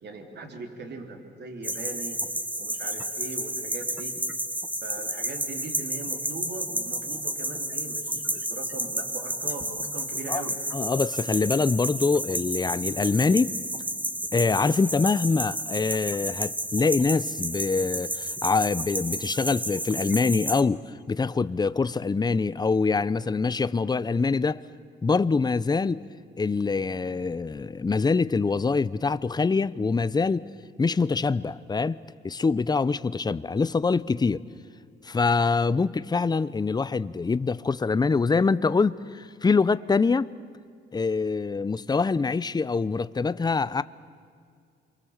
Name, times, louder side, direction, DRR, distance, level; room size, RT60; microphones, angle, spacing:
voice 1, 0.0-2.2 2.6-4.1 4.8-10.6, right 3 dB, 60° right, 3.6 m, -40 dB
sound 1, 1.6-20.6, right 1 dB, 10° right, 1.4 m, -31 dB
voice 2, 10.7-13.5 14.3-24.6 25.0-26.0 26.4-30.4 30.8-32.0 32.2-34.4 35.0-40.3 40.9-43.8, left 4 dB, 20° left, 0.7 m, -24 dB
28.5 x 23.5 x 7.3 m
cardioid pair, 90°, 20 cm